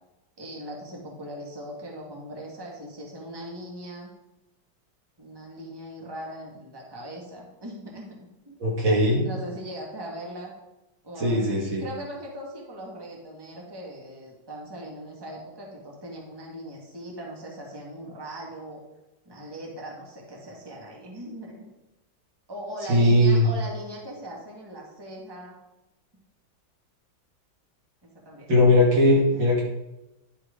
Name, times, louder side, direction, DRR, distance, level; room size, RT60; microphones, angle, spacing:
voice 1, 0.4-4.1 5.2-8.2 8.4-8.6 9.2-10.5 11.0-18.8 19.2-21.6 22.5-25.6 26.1-26.2 28.0-28.5 29.3-29.4, right 1 dB, 15° right, -2 dB, 1.7 m, -39 dB
voice 2, 8.6-9.2 11.2-11.9 22.9-23.5 28.5-29.6, left 1 dB, 75° right, -3 dB, 2.9 m, -19 dB
11.0 x 4.6 x 5.0 m, 0.95 s
omnidirectional pair, 2.1 m